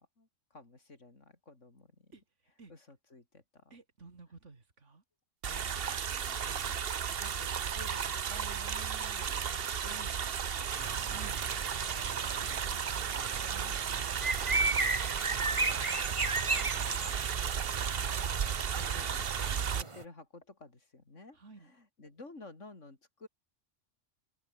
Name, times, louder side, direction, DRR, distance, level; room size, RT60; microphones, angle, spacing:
voice 1, 0.0-2.1 2.7-3.7 5.4-10.3 10.6-11.3 11.9-12.8 13.1-13.8 14.5-15.1 15.4-16.9 17.6-23.3, left 3 dB, 80° left, 4.2 m, -54 dB
voice 2, 3.7-5.0 9.8-10.2 11.0-11.4 13.5-13.9 21.3-21.7, right 3 dB, 75° right, 3.1 m, -52 dB
sound 1, 5.4-19.8, right 8 dB, 55° right, 1.1 m, -34 dB
sound 2, 10.8-20.0, right 3 dB, 25° right, 1.4 m, -36 dB
open air
omnidirectional pair, 1.3 m